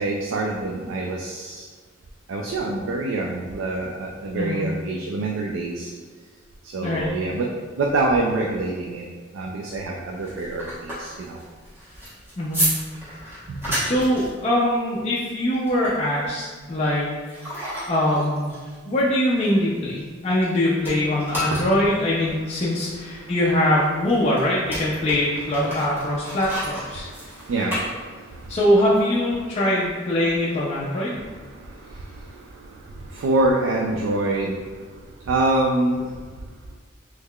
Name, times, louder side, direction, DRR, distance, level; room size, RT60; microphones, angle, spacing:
voice 1, 0.0-1.7 2.3-5.9 6.6-7.5 7.8-9.1 9.3-11.4 13.5-13.8 21.5-21.7 22.6-23.3 26.3-26.4 26.9-28.6 29.4-29.5 30.7-34.9 35.3-36.1, right 2 dB, 85° right, -1 dB, 0.3 m, -26 dB
voice 2, 4.3-4.7 6.8-7.1 12.4-12.6 13.8-17.4 17.9-18.5 18.9-27.1 28.5-31.2, left 1 dB, 35° left, -6 dB, 0.4 m, -22 dB
sound 1, 10.1-20.5 20.8-28.5, equal, 10° right, 1.0 m, -33 dB
3.5 x 3.1 x 2.3 m, 1.5 s
head